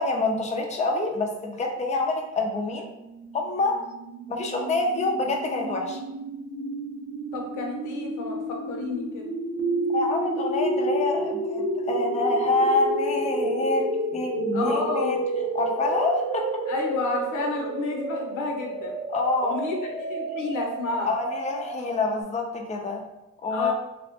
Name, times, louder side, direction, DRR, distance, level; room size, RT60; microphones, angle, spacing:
voice 1, 0.0-2.9 3.3-3.8 4.3-6.0 9.9-15.2 15.5-16.4 19.1-19.6 21.1-23.0 23.4-23.7, left 3 dB, 25° left, 1 dB, 0.5 m, -26 dB
sound 1, 3.1-22.2, right 2 dB, 45° right, 0.5 m, -30 dB
voice 2, 7.3-9.2 14.5-15.1 16.7-19.0 19.4-21.1 23.5-23.7, left 3 dB, 90° left, 1 dB, 0.7 m, -30 dB
3.3 x 2.1 x 2.8 m, 0.91 s
cardioid pair, 90°, 30 cm